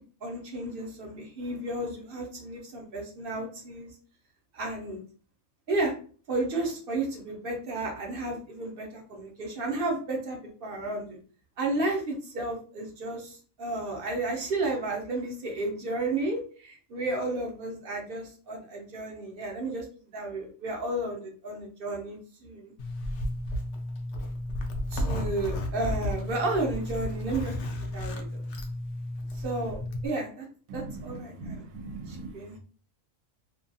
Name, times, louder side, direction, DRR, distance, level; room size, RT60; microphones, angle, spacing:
voice 1, 0.2-3.9 4.5-5.0 5.7-5.9 6.3-11.2 11.6-19.9 20.1-22.7 24.9-28.4 29.3-29.8 30.0-30.5 30.7-31.6 32.1-32.6, right 2 dB, 50° right, 0 dB, 0.8 m, -32 dB
Zipper (clothing), 22.8-30.1, left 1 dB, 65° left, 0.7 m, -33 dB
voice 2, 30.7-32.3, right 3 dB, 80° right, 5 dB, 1.0 m, -40 dB
2.6 x 2.4 x 2.6 m, 0.42 s
omnidirectional pair, 1.4 m